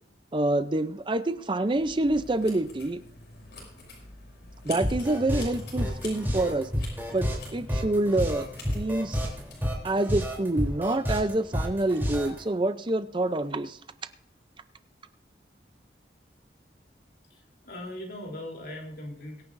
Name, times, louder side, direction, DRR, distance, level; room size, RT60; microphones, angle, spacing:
voice 1, 0.3-3.0 4.7-6.7 7.1-8.5 8.7-9.2 9.8-13.8, right 2 dB, 30° right, 11 dB, 0.5 m, -27 dB
sound 1, 1.7-9.6, left 3 dB, 75° left, 6.2 m, -46 dB
sound 2, 4.8-12.4, equal, 10° right, 3.3 m, -30 dB
voice 2, 17.3-19.4, left 1 dB, 60° left, 0 dB, 3.4 m, -40 dB
23.5 x 9.9 x 2.6 m, 0.70 s
head